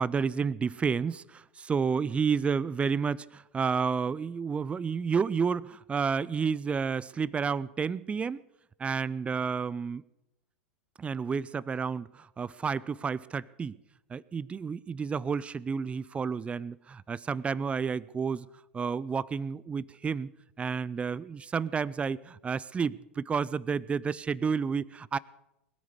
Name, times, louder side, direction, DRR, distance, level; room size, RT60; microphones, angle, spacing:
voice 1, 0.0-8.4 8.8-10.0 11.0-13.8 14.1-18.5 18.7-20.3 20.6-25.2, right 6 dB, 20° right, 21 dB, 0.4 m, -30 dB
20.0 x 9.5 x 6.7 m, 0.88 s
hypercardioid pair, 95°, 7 cm